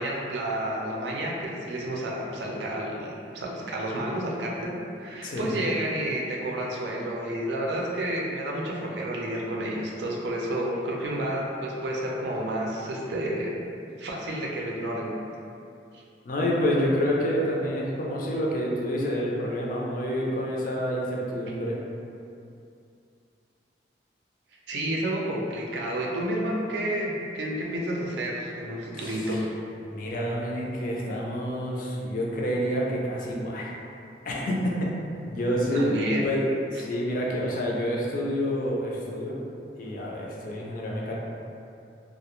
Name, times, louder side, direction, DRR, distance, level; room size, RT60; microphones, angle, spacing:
voice 1, 0.0-13.5 14.0-15.1 15.9-16.0 21.4-21.5 24.7-29.5 35.7-36.2, right 1 dB, 75° right, -2 dB, 0.4 m, -30 dB
voice 2, 5.2-5.6 16.2-21.8 28.9-29.4 29.8-33.7 34.2-34.9 35.3-35.9 36.2-39.3 39.8-41.1, equal, 50° left, -3 dB, 0.4 m, -28 dB
2.3 x 2.1 x 2.9 m, 2.5 s
head